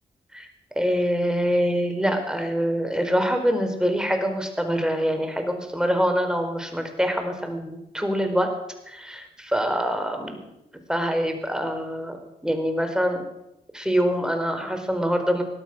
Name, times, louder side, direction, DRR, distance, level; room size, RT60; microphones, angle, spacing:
voice 1, 0.8-8.5 8.9-10.5 10.9-13.2 13.7-15.4, equal, 5° right, 6 dB, 4.3 m, -25 dB
18.0 x 12.0 x 6.2 m, 0.88 s
supercardioid pair, 40°, 19 cm